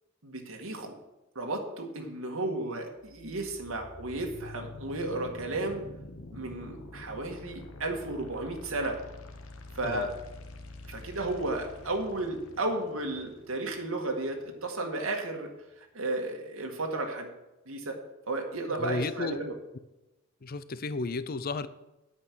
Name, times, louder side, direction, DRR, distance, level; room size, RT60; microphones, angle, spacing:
voice 1, 0.2-0.9 1.4-5.8 6.3-9.0 9.7-10.1 10.8-15.5 15.8-17.3 17.7-18.0 18.3-19.6, right 2 dB, 80° right, 2 dB, 1.8 m, -33 dB
sound 1, 3.0-15.0, left 2 dB, 80° left, 1.2 m, -47 dB
voice 2, 18.8-19.4 20.4-21.7, left 3 dB, 45° left, 15 dB, 0.5 m, -33 dB
9.1 x 8.8 x 6.2 m, 0.99 s
head